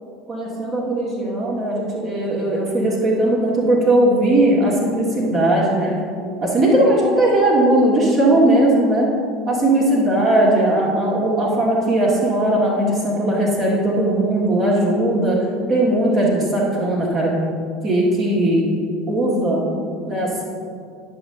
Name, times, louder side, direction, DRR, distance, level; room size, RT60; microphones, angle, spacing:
voice 1, 0.3-6.0 6.4-9.1 9.5-17.3 17.8-18.6 19.1-19.6 20.1-20.4, right 1 dB, 35° right, -5 dB, 1.8 m, -18 dB
10.5 x 6.4 x 3.7 m, 2.3 s
figure-of-eight pair, 70°, 0 cm